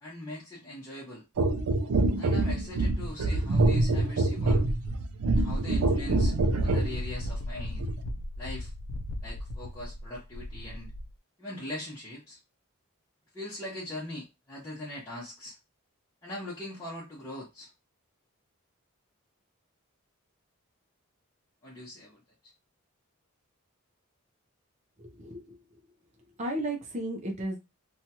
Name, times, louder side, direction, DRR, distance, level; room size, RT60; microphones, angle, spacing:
voice 1, 0.0-1.2 2.1-4.7 5.3-7.8 8.4-8.7 9.2-10.9 11.4-12.4 13.3-15.6 16.2-17.7 21.6-22.2, left 1 dB, 15° left, -8 dB, 0.8 m, -41 dB
sound 1, 1.4-7.0 7.8-8.0, right 2 dB, 80° right, 0.4 m, -25 dB
Wind, 5.8-11.1, left 1 dB, 80° left, 0.4 m, -37 dB
voice 2, 25.0-25.6 26.4-27.6, right 1 dB, 30° right, 1 dB, 0.5 m, -34 dB
2.9 x 2.3 x 2.7 m, 0.24 s
head